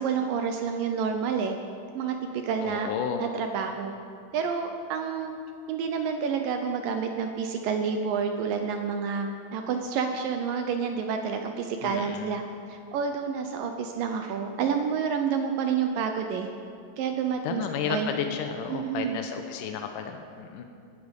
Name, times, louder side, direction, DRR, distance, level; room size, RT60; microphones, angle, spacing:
voice 1, 0.0-1.6 1.9-2.9 3.2-3.9 4.3-5.3 5.7-12.4 12.7-16.5 17.0-17.6 17.9-18.1 18.7-19.2, right 6 dB, 80° right, 5 dB, 2.0 m, -29 dB
voice 2, 2.6-3.3 11.8-12.4 17.4-20.6, left 7 dB, 85° left, 5 dB, 1.9 m, -32 dB
18.0 x 12.0 x 5.3 m, 2.4 s
omnidirectional pair, 4.8 m